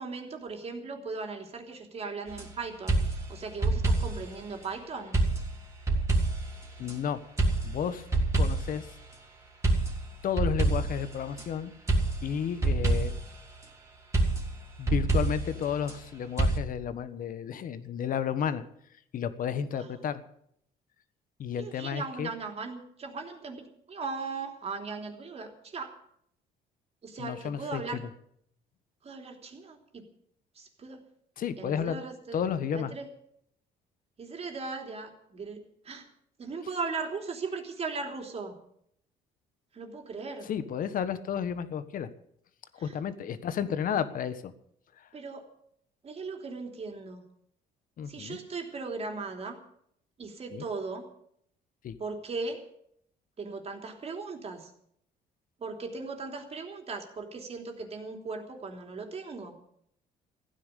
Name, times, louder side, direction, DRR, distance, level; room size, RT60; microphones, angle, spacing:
voice 1, 0.0-5.2 19.7-19.9 21.6-25.9 27.0-28.0 29.0-30.1 30.5-31.0 31.6-32.4 32.7-33.1 34.2-36.1 36.4-38.6 39.7-40.5 42.8-42.9 45.1-45.5 46.0-47.2 48.1-49.6 50.2-51.1 52.0-52.7 53.4-54.7 55.6-59.6, right 4 dB, 35° right, 3 dB, 3.4 m, -38 dB
sound 1, 2.3-2.5 2.9-4.3 5.1-6.9 7.4-8.9 9.6-11.4 11.9-13.4 14.1-16.0 16.4-16.6, right 2 dB, 15° right, 3.4 m, -27 dB
voice 2, 6.8-7.2 7.6-8.0 8.3-8.9 10.2-11.7 12.2-13.1 14.8-18.6 19.1-20.2 21.4-22.3 27.2-27.8 31.4-32.0 32.3-32.9 40.4-42.1 42.7-44.5 45.0-45.1 48.0-48.4 50.5-50.6 51.8-52.0, left 8 dB, 55° left, 12 dB, 1.4 m, -32 dB
15.5 x 10.0 x 8.3 m, 0.69 s
cardioid pair, 110°, 17 cm